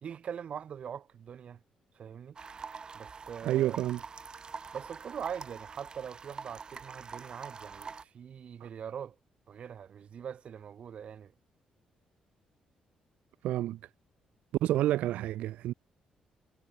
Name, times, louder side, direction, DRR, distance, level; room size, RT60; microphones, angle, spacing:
voice 1, 0.0-1.6 2.0-2.4 2.9-3.8 4.7-9.2 9.5-11.3, right 8 dB, 55° right, 1.8 m, -42 dB
sound 1, 2.4-8.0, right 5 dB, 40° right, 2.1 m, -45 dB
voice 2, 3.4-4.0 8.6-8.7 13.4-13.8 14.6-15.7, right 14 dB, 85° right, 0.6 m, -29 dB
cardioid pair, 95°, 2 cm